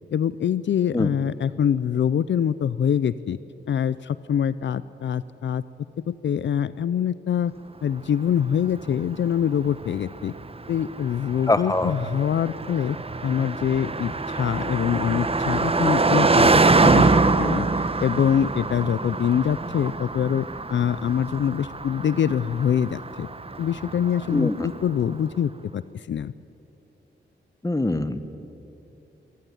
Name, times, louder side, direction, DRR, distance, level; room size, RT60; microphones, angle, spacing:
voice 1, 0.1-3.4 3.7-5.6 6.1-7.5 7.8-10.3 10.7-13.0 13.2-16.5 16.8-17.1 17.4-23.3 23.6-26.3, left 8 dB, 75° left, 16 dB, 0.6 m, -24 dB
Car passing by, 8.4-24.8, right 3 dB, 30° right, 1.1 m, -24 dB
voice 2, 11.5-11.9 24.3-24.7 27.6-28.2, left 2 dB, 20° left, 11 dB, 1.6 m, -23 dB
24.0 x 18.0 x 10.0 m, 2.8 s
cardioid pair, 60°, 19 cm